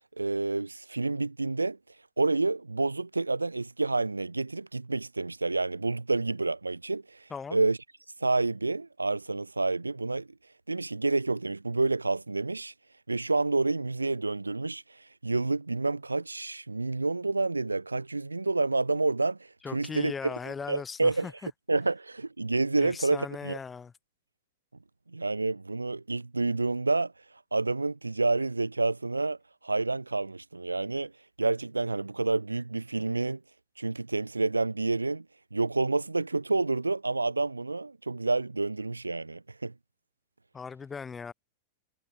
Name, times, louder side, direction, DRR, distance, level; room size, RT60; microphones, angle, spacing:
voice 1, 0.2-1.8 2.2-7.8 8.2-10.3 10.7-12.7 13.1-20.1 20.7-21.3 21.7-23.6 25.1-31.1 31.4-33.4 33.8-35.2 35.5-39.7, right 3 dB, 80° right, 0.5 m, -29 dB
voice 2, 7.3-7.6 19.6-21.3 22.8-23.9 40.5-41.3, left 5 dB, 15° left, 4.2 m, -38 dB
figure-of-eight pair, 90°, 0 cm